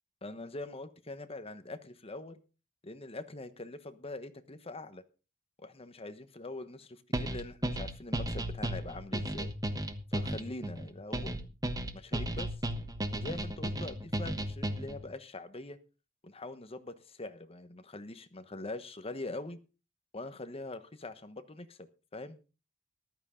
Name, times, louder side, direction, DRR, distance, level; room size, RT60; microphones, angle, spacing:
voice 1, 0.2-2.4 2.8-5.0 5.6-9.5 10.1-11.5 11.9-12.5 13.1-15.8 16.2-19.6 20.1-21.8 22.1-22.4, left 2 dB, 30° left, 1.1 m, -43 dB
sound 1, 7.1-15.0, right 1 dB, 20° right, 1.1 m, -34 dB
14.0 x 12.5 x 3.8 m
head